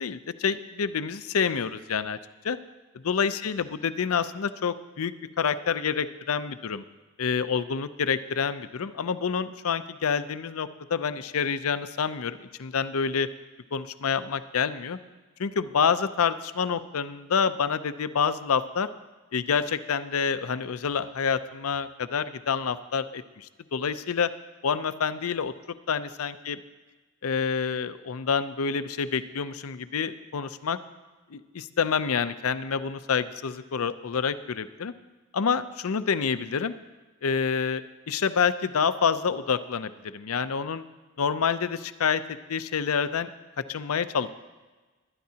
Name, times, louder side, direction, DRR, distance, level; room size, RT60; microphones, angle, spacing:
voice 1, 0.0-2.2 2.4-2.6 3.0-6.8 7.2-13.3 13.7-15.0 15.4-18.9 19.3-24.3 24.6-25.5 25.9-26.6 27.2-30.8 31.3-34.9 35.3-36.7 37.2-37.8 38.1-40.8 41.2-42.2 42.5-43.3 43.7-44.3, left 6 dB, 85° left, 12 dB, 0.5 m, -27 dB
21.0 x 10.5 x 2.8 m, 1.3 s
head